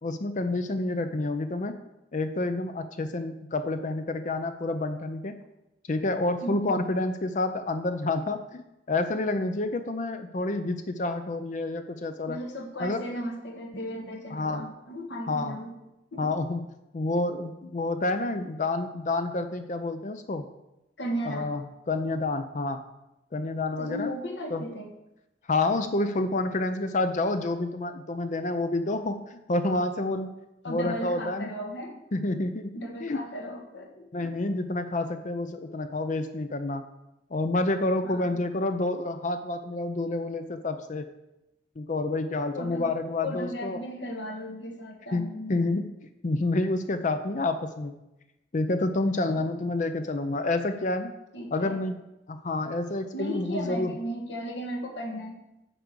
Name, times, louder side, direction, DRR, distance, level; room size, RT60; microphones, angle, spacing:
voice 1, 0.0-1.8 2.1-5.4 5.9-12.4 12.8-13.0 14.3-14.7 15.3-15.6 16.2-16.6 16.9-20.5 21.2-22.8 23.3-24.1 24.5-24.6 25.5-30.3 30.7-31.5 32.1-32.7 33.0-33.2 34.1-36.9 37.3-41.1 41.8-43.8 45.1-45.9 46.2-48.0 48.5-51.1 51.5-52.0 52.3-53.9, left 2 dB, 40° left, 8 dB, 0.5 m, -29 dB
voice 2, 6.4-6.8 12.3-15.7 16.1-16.3 21.0-21.5 23.8-24.9 30.6-31.9 32.7-34.3 38.0-38.4 42.5-42.9 43.2-45.6 49.3-49.4 51.3-51.8 53.1-55.4, equal, 75° left, 2 dB, 1.7 m, -36 dB
10.0 x 4.7 x 6.7 m, 0.93 s
head